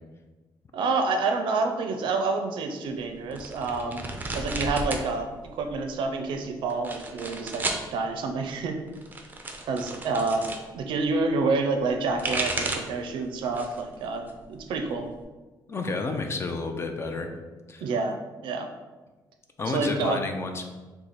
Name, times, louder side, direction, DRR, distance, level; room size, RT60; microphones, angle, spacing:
voice 1, 0.7-4.0 4.3-8.8 9.7-10.5 10.7-15.1 17.8-18.2 18.4-18.7 19.7-20.2, right 3 dB, 80° right, 5 dB, 0.4 m, -28 dB
sound 1, 3.3-5.1 5.4-6.0 6.7-7.9 8.9-10.6 11.9-13.0 13.4-13.9 14.3-15.2, right 2 dB, 20° right, 0.4 m, -33 dB
voice 2, 15.7-17.3 17.7-17.8 19.6-20.6, left 3 dB, 30° left, 5 dB, 0.4 m, -30 dB
3.1 x 2.3 x 4.0 m, 1.2 s
cardioid pair, 100°, 8 cm